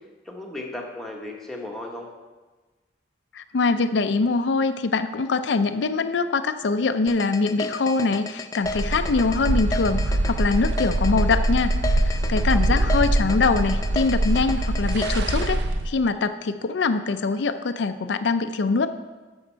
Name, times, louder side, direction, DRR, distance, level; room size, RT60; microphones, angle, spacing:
voice 1, 0.2-2.1 12.5-12.9, left 1 dB, ahead, -1 dB, 1.1 m, -36 dB
voice 2, 3.3-15.6 15.8-18.9, left 4 dB, 75° left, 10 dB, 0.5 m, -23 dB
sound 1, 7.1-15.5, left 3 dB, 20° left, 0.4 m, -32 dB
sound 2, 8.6-15.9, right 1 dB, 65° right, 0.6 m, -23 dB
11.5 x 6.4 x 4.5 m, 1.3 s
head